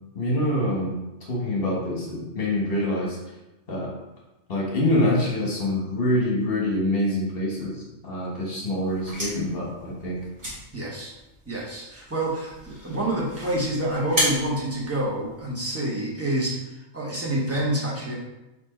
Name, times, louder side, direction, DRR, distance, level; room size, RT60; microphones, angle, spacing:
voice 1, 0.1-1.0 1.3-3.2 3.7-3.9 4.5-10.2, left 1 dB, 45° left, -3 dB, 1.3 m, -25 dB
sound 1, 8.8-15.6, equal, 35° right, 1.8 m, -34 dB
voice 2, 10.7-11.1 11.5-16.6 16.9-18.1, right 1 dB, 15° right, -5 dB, 0.8 m, -27 dB
4.2 x 2.9 x 4.2 m, 1.0 s
omnidirectional pair, 1.4 m